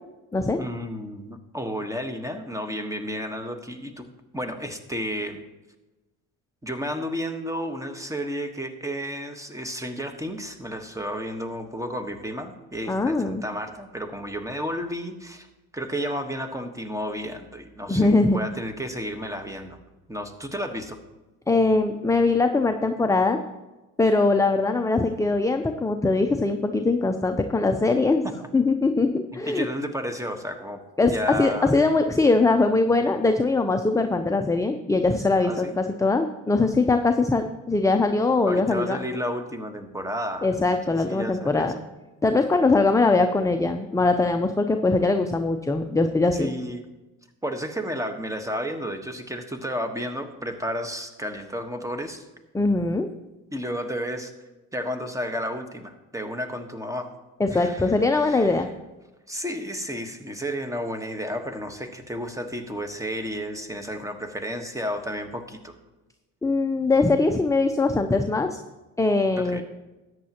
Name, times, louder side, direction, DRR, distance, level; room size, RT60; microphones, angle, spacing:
voice 1, 0.6-4.1 4.3-5.4 6.6-15.5 15.7-19.8 20.1-21.0 28.2-28.5 29.5-31.7 35.4-35.8 38.5-41.7 46.3-46.9 47.4-52.3 53.5-54.3 54.7-57.1 57.5-58.7 59.3-65.7 69.4-69.6, equal, 10° right, 7 dB, 1.3 m, -32 dB
voice 2, 12.9-13.4 17.9-18.4 21.5-23.4 24.0-28.3 28.5-29.6 31.0-39.0 40.4-41.7 42.2-46.5 52.5-53.1 57.4-58.7 66.4-68.6 69.0-69.6, left 3 dB, 10° left, 6 dB, 0.6 m, -21 dB
13.5 x 9.4 x 3.0 m, 1.1 s
supercardioid pair, 70°, 39 cm